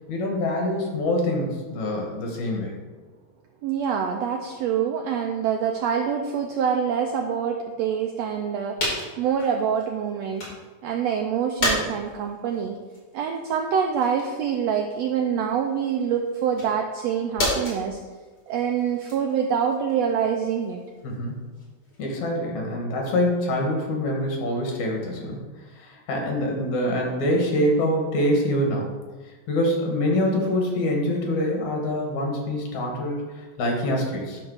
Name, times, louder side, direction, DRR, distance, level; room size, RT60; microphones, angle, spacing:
voice 1, 0.1-2.7 21.0-21.4 22.0-25.4 25.8-28.9 29.5-34.4, left 1 dB, 65° left, 0 dB, 2.8 m, -25 dB
voice 2, 3.6-8.8 9.2-10.5 10.8-12.8 13.1-18.0 18.5-20.8, right 7 dB, 90° right, 3 dB, 1.4 m, -25 dB
sound 1, 8.2-8.3 8.8-10.7 11.1-22.2, left 1 dB, 45° left, 3.5 m, -33 dB
10.5 x 3.9 x 6.3 m, 1.3 s
omnidirectional pair, 3.6 m